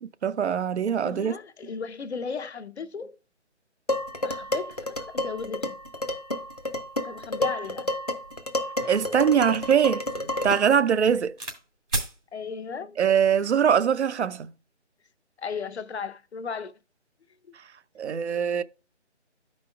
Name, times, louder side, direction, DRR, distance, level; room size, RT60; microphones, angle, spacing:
voice 1, 0.0-1.3 8.8-10.0 10.4-11.3 13.0-14.5 18.0-18.6, right 8 dB, 70° right, 0.5 m, -22 dB
voice 2, 1.0-3.2 4.2-5.7 7.0-7.9 12.3-13.0 15.4-16.7, left 5 dB, 65° left, 0.7 m, -35 dB
Dishes pots and pans, 3.9-10.8, left 1 dB, 35° left, 0.4 m, -30 dB
sound 1, 8.2-8.3 8.8-11.6 11.9-12.2 13.0-13.4, right 2 dB, 90° right, 2.3 m, -36 dB
12.5 x 5.1 x 2.2 m
figure-of-eight pair, 160°, 36 cm